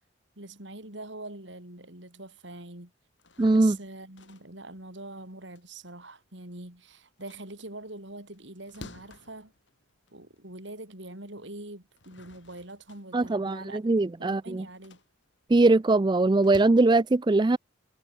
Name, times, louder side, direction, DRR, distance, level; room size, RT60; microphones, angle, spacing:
voice 1, 0.4-2.9 3.5-9.5 10.1-13.9 14.2-15.0, right 2 dB, 70° right, 5.6 m, -43 dB
sound 1, 3.1-6.7 7.0-10.6 11.0-11.1 11.7-16.7, left 2 dB, 70° left, 6.6 m, -52 dB
voice 2, 3.4-3.8 13.1-14.6 15.5-17.6, right 2 dB, 25° right, 0.4 m, -21 dB
head